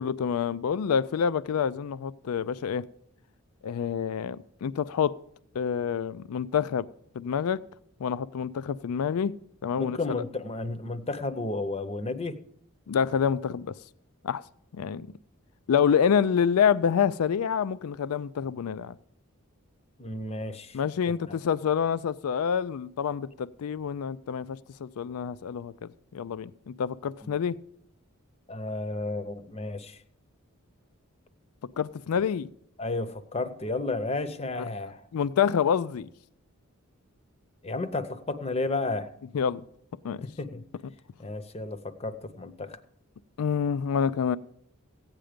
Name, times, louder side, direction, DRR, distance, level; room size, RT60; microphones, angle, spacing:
voice 1, 0.0-2.8 3.6-5.2 5.5-6.9 7.2-7.6 8.0-9.3 9.6-10.0 12.9-13.7 14.2-14.4 14.8-15.1 15.7-18.9 20.7-27.6 31.8-32.5 35.1-36.1 39.3-39.6 40.0-40.3 43.4-44.4, left 7 dB, 85° left, 0.4 m, -27 dB
voice 2, 9.8-12.4 20.0-20.8 21.3-21.4 27.2-27.3 28.5-30.0 32.8-35.0 37.6-39.1 40.2-40.6 41.2-42.8, left 2 dB, 30° left, 0.7 m, -32 dB
15.0 x 9.0 x 5.1 m
head